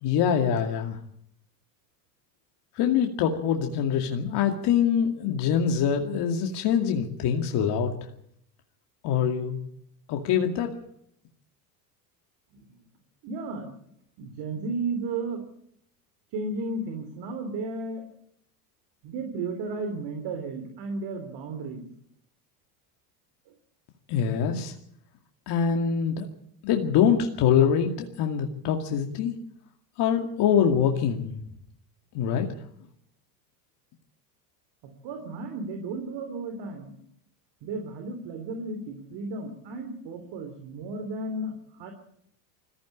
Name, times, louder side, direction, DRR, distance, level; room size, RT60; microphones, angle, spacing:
voice 1, 0.0-1.0 2.8-7.9 9.0-9.6 10.1-10.7 24.1-24.7 25.5-26.3 26.6-29.3 30.0-31.4 32.1-32.5, left 8 dB, 55° left, 2 dB, 2.4 m, -24 dB
voice 2, 13.2-13.7 14.2-15.5 16.3-18.1 19.0-21.8 23.5-23.6 34.8-37.0 37.6-41.9, right 3 dB, 55° right, 5 dB, 3.6 m, -34 dB
21.0 x 15.0 x 8.6 m, 0.71 s
hypercardioid pair, 95°, 49 cm